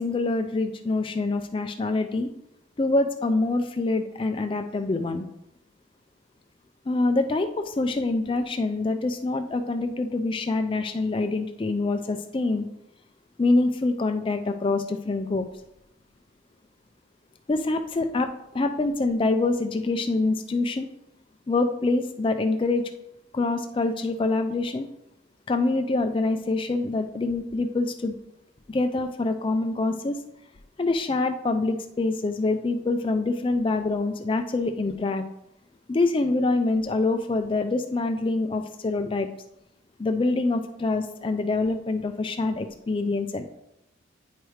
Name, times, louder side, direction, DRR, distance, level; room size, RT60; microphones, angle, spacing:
voice 1, 0.0-2.3 2.8-5.2 6.9-12.7 13.4-15.5 17.5-20.9 21.5-22.8 23.3-24.9 25.5-28.2 28.7-30.2 30.8-35.2 35.9-39.3 40.0-43.4, left 3 dB, 25° left, 7 dB, 0.3 m, -25 dB
9.0 x 4.8 x 3.1 m, 0.83 s
head